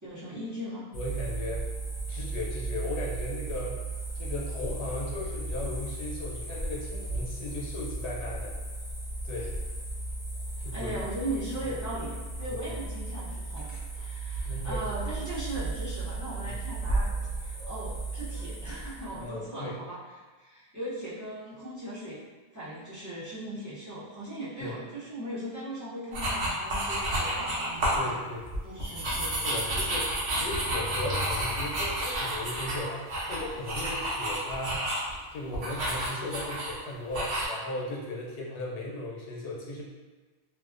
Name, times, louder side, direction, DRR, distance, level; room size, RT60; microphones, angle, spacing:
voice 1, 0.0-0.9 10.7-17.1 17.4-20.0 20.4-22.2 22.5-28.2 28.6-29.6, right 1 dB, 25° right, -12 dB, 0.5 m, -38 dB
voice 2, 0.9-1.7 2.0-3.8 4.1-8.5 9.2-9.6 10.6-11.0 12.4-12.6 14.4-14.8 16.4-16.5 19.1-19.8 24.6-24.8 27.9-28.4 29.3-34.9 35.3-39.8, left 1 dB, 85° left, -3 dB, 0.9 m, -37 dB
sound 1, 0.9-19.3, right 2 dB, 45° left, 0.7 m, -35 dB
sound 2, 26.1-28.0 28.4-35.1 35.5-36.7 37.1-37.4, right 1 dB, 80° right, 1.0 m, -30 dB
2.4 x 2.1 x 2.4 m, 1.3 s
omnidirectional pair, 1.1 m